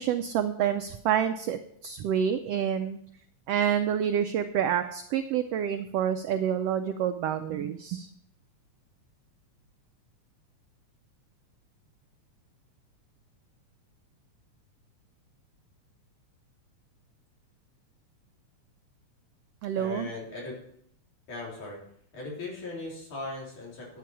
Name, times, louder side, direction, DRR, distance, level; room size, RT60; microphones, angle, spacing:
voice 1, 0.0-3.0 3.5-8.1 19.6-20.1, right 9 dB, 85° right, 8 dB, 1.4 m, -28 dB
voice 2, 19.7-20.6 21.3-21.8 22.1-24.0, left 2 dB, 75° left, -4 dB, 5.0 m, -38 dB
10.5 x 8.4 x 4.7 m, 0.69 s
omnidirectional pair, 3.4 m